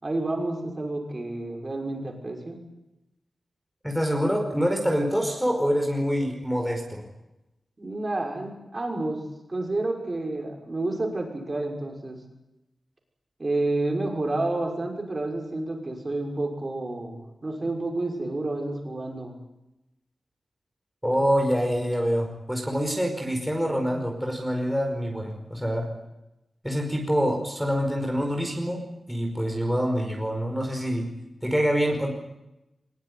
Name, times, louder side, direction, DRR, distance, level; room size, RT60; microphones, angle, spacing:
voice 1, 0.0-2.6 7.8-9.2 9.5-12.2 13.4-19.3, right 2 dB, 30° right, 1 dB, 5.8 m, -30 dB
voice 2, 3.8-7.0 21.0-25.9 26.6-31.1 31.4-32.1, equal, ahead, 1 dB, 5.1 m, -26 dB
23.0 x 21.5 x 9.6 m, 0.94 s
wide cardioid pair, 120°, 0 cm